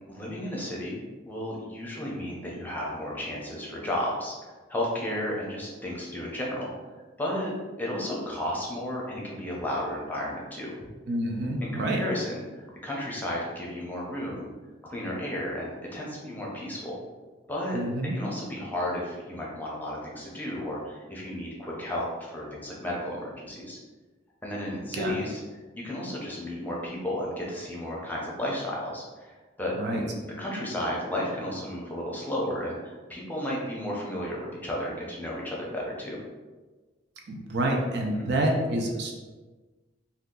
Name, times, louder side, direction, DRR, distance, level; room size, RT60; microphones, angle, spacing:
voice 1, 0.1-1.0 1.3-6.7 7.2-10.7 11.6-14.5 14.8-17.0 17.5-17.8 18.1-23.8 24.4-25.4 25.7-36.2 38.1-38.3, left 1 dB, 10° left, -4 dB, 0.6 m, -33 dB
voice 2, 11.1-12.0 17.7-18.2 24.9-25.2 29.8-30.0 37.3-39.1, right 1 dB, 60° right, 0 dB, 0.5 m, -28 dB
2.8 x 2.2 x 3.6 m, 1.3 s
head